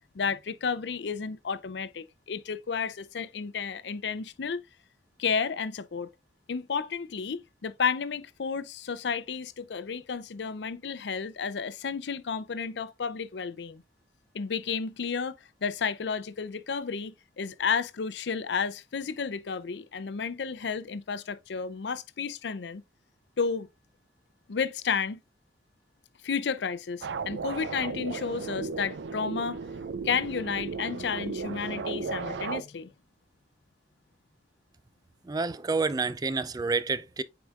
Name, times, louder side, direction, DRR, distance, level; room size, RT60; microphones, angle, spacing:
voice 1, 0.1-4.6 5.2-6.1 6.5-13.8 14.3-22.8 23.4-23.7 24.5-25.2 26.2-29.6 30.0-32.9, left 5 dB, 75° left, 0.5 m, -32 dB
sound 1, 27.0-32.6, right 4 dB, 85° right, 0.5 m, -35 dB
voice 2, 35.2-37.2, right 4 dB, 20° right, 0.4 m, -29 dB
8.0 x 4.8 x 2.4 m
head